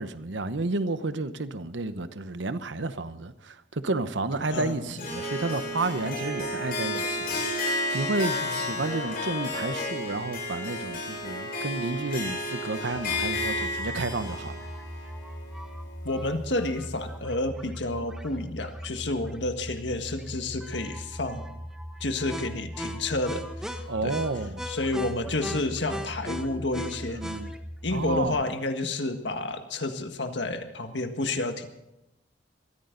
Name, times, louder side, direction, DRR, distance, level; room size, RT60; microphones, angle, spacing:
voice 1, 0.0-14.7 23.9-24.7 27.1-27.5 27.9-28.4, right 3 dB, 85° right, 0.9 m, -31 dB
voice 2, 4.5-4.9 8.4-8.6 16.0-21.5 22.0-23.4 23.7-24.2 24.7-27.2 27.8-31.7, left 2 dB, 75° left, 1.7 m, -30 dB
Harp, 5.0-16.2, left 1 dB, 50° left, 7.2 m, -32 dB
sound 1, 12.9-28.3, equal, 5° right, 1.3 m, -38 dB
22.0 x 15.0 x 3.9 m
head